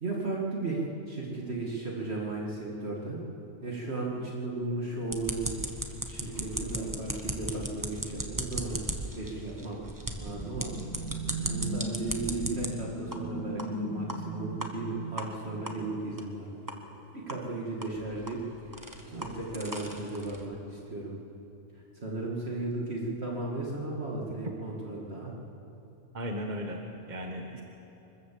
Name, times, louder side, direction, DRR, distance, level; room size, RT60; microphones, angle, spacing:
voice 1, 0.0-3.2 3.6-5.6 6.1-8.8 9.1-9.8 10.2-10.7 11.3-16.5 17.1-18.4 18.7-18.8 19.1-21.2 21.7-25.3, right 2 dB, 60° right, -3 dB, 2.5 m, -35 dB
sound 1, 5.1-12.7 13.1-13.2 13.6-13.7 14.1-14.2 14.6-14.7 15.2-15.3 15.7-15.8 16.2-16.3 16.7-16.8 17.3-17.4 17.8-20.5, right 1 dB, 15° right, 1.4 m, -37 dB
sound 2, 9.9-16.2, right 2 dB, 10° left, 6.9 m, -37 dB
voice 2, 26.1-27.6, equal, 40° right, 2 dB, 1.4 m, -36 dB
24.5 x 14.0 x 7.6 m, 2.9 s
omnidirectional pair, 1.2 m